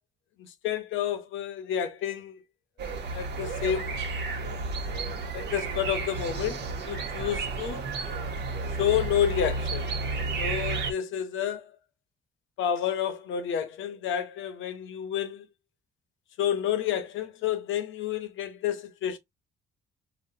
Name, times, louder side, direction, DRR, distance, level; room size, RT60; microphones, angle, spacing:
voice 1, 0.4-2.3 3.1-3.9 5.3-7.8 8.8-9.9 10.4-11.8 12.6-15.5 16.4-19.2, left 9 dB, 80° left, 0.7 m, -30 dB
sound 1, 2.8-10.9, right 3 dB, 60° right, 0.8 m, -32 dB
3.9 x 2.1 x 2.7 m
cardioid pair, 90°, 20 cm